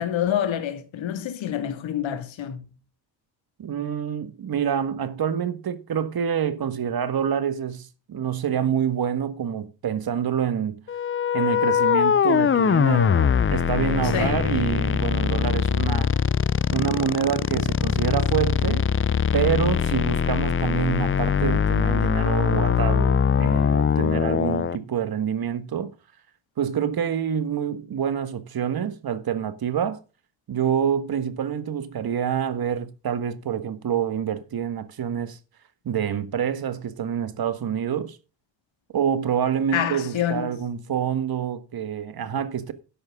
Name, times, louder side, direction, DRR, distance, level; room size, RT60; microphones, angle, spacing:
voice 1, 0.0-2.6 14.0-14.5 39.7-40.6, left 10 dB, 85° left, 2.0 m, -27 dB
voice 2, 3.6-10.8 11.3-16.1 16.7-18.8 19.3-25.9 26.6-30.0 30.5-35.4 35.8-38.2 38.9-42.7, right 8 dB, 50° right, 1.6 m, -27 dB
sound 1, 10.9-24.8, left 7 dB, 30° left, 0.5 m, -22 dB
13.0 x 10.5 x 3.6 m
wide cardioid pair, 160°, 45 cm